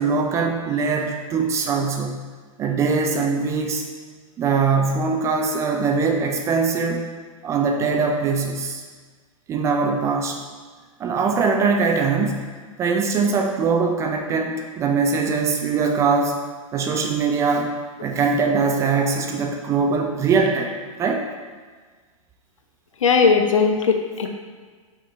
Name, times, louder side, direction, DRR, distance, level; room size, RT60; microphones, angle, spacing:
voice 1, 0.0-2.2 2.6-3.8 4.4-7.0 7.4-8.8 9.5-10.4 11.0-12.5 12.8-16.4 16.7-17.7 18.0-20.7 21.0-21.2, right 4 dB, 15° right, 3 dB, 0.4 m, -22 dB
voice 2, 23.0-24.3, left 5 dB, 60° left, 4 dB, 0.8 m, -18 dB
5.6 x 5.0 x 4.1 m, 1.5 s
figure-of-eight pair, 105°, 18 cm